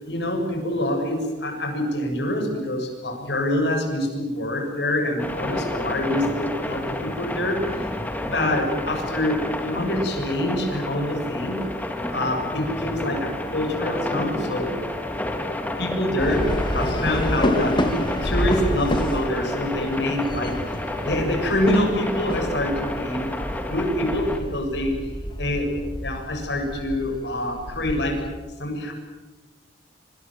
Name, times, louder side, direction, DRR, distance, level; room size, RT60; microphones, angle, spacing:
voice 1, 0.0-7.6 8.3-9.4 9.6-11.6 12.1-14.7 15.8-17.8 18.2-20.6 21.0-23.3 23.7-25.0 25.4-25.7 26.0-28.2 28.6-28.9, left 1 dB, 70° left, 3 dB, 7.2 m, -25 dB
sound 1, 5.2-24.4, left 1 dB, 10° left, 2.8 m, -30 dB
sound 2, 16.2-28.3, equal, 25° left, 3.2 m, -29 dB
26.5 x 25.5 x 7.7 m, 1.3 s
head